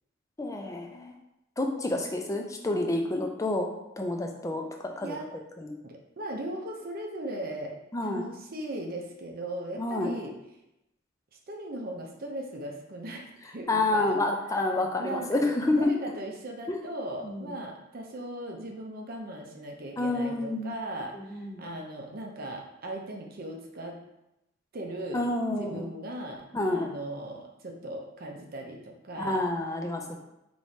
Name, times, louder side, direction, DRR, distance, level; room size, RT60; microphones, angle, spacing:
voice 1, 0.4-1.1 1.6-3.7 4.0-5.2 5.6-5.8 7.9-8.3 9.8-10.1 13.7-15.9 16.7-16.8 17.2-17.5 20.0-20.7 21.1-21.6 25.1-25.9 26.5-26.9 29.2-30.2, left 2 dB, 15° left, 3 dB, 0.4 m, -29 dB
voice 2, 5.8-7.7 8.0-10.3 11.5-14.2 15.0-24.0 24.7-25.2 25.5-29.5, right 1 dB, 50° right, 0 dB, 0.6 m, -38 dB
4.8 x 3.0 x 2.8 m, 0.89 s
head